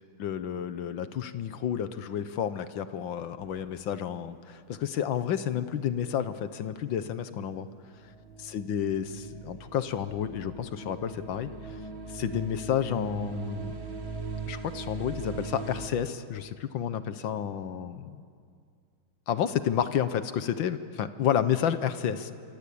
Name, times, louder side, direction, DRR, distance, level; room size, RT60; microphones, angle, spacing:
voice 1, 0.2-7.7 8.4-11.7 12.1-13.7 14.5-18.2 19.3-22.3, left 9 dB, 70° left, 12 dB, 1.6 m, -30 dB
sound 1, 3.4-4.2 7.8-15.9, right 4 dB, 35° right, 1.6 m, -40 dB
26.0 x 23.0 x 8.5 m, 2.2 s
omnidirectional pair, 2.2 m